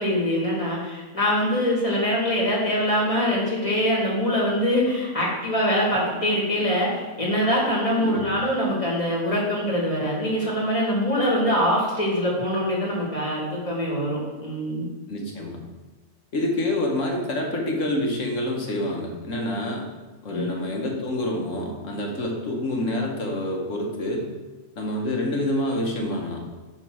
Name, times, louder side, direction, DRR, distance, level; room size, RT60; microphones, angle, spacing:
voice 1, 0.0-14.9 20.3-20.5, equal, 25° left, -4 dB, 2.4 m, -24 dB
voice 2, 15.1-15.6 16.3-19.9 20.2-24.3 24.8-26.4, left 1 dB, 80° left, 1 dB, 1.7 m, -27 dB
6.4 x 4.2 x 6.2 m, 1.3 s
omnidirectional pair, 1.3 m